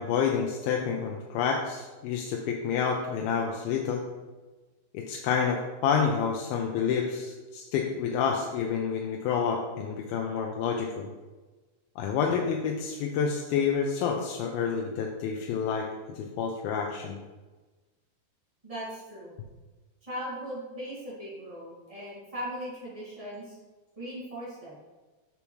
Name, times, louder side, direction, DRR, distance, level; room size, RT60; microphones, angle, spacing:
voice 1, 0.0-4.0 4.9-11.1 12.0-17.2, left 6 dB, 85° left, 1 dB, 2.4 m, -29 dB
voice 2, 18.6-19.4 20.0-23.6 23.9-24.8, equal, 60° right, -9 dB, 0.3 m, -38 dB
6.9 x 6.7 x 3.1 m, 1.2 s
omnidirectional pair, 4.3 m